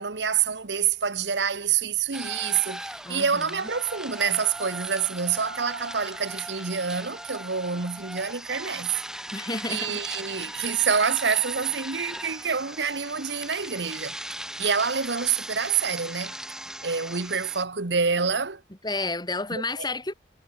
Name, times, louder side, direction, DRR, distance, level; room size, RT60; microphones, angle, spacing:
voice 1, 0.0-8.9 9.7-14.2 14.6-16.3 16.8-18.6 19.5-19.6, right 6 dB, 75° right, 1.4 m, -27 dB
sound 1, 2.1-17.6, right 1 dB, 5° right, 4.4 m, -38 dB
voice 2, 3.0-3.5 9.3-9.9 18.8-20.1, left 3 dB, 25° left, 3.9 m, -30 dB
head